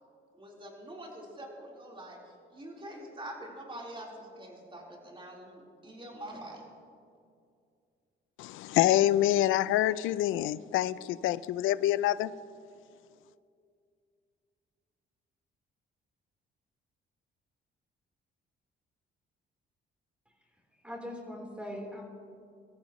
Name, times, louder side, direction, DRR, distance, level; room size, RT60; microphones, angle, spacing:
voice 1, 0.3-2.2 2.5-6.6, right 1 dB, 25° right, -2 dB, 4.0 m, -45 dB
voice 2, 8.4-12.3, left 13 dB, 90° left, 17 dB, 0.5 m, -26 dB
voice 3, 20.8-22.0, left 1 dB, 5° right, -1 dB, 3.8 m, -40 dB
24.0 x 14.0 x 3.1 m, 2.3 s
cardioid pair, 90°, 20 cm